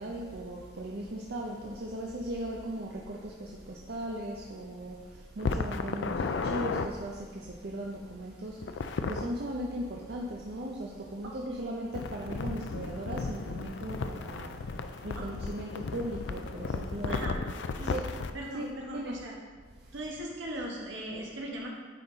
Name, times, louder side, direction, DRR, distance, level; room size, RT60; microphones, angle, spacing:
voice 1, 0.0-17.4 17.8-18.1 18.4-19.2 19.7-20.1, right 1 dB, 55° right, -2 dB, 0.6 m, -38 dB
sound 1, 5.4-6.9 8.6-9.3 11.9-18.3, left 4 dB, 70° left, 0.4 m, -34 dB
voice 2, 11.2-11.8 15.2-15.3 17.1-17.4 17.7-18.0 18.3-19.3 19.9-21.7, right 1 dB, 75° right, -2 dB, 1.4 m, -39 dB
9.1 x 3.9 x 4.0 m, 1.5 s
head